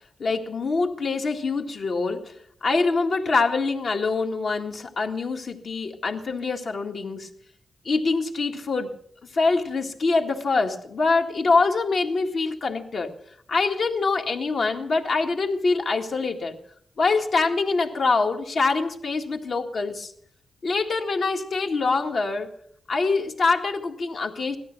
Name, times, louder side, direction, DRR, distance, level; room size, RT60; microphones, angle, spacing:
voice 1, 0.2-2.3 2.6-7.3 7.9-9.0 9.3-13.1 13.5-16.6 17.0-20.1 20.6-22.5 22.9-24.6, left 3 dB, 70° left, 2 dB, 1.9 m, -24 dB
17.0 x 13.0 x 6.1 m, 0.67 s
cardioid pair, 80°, 0 cm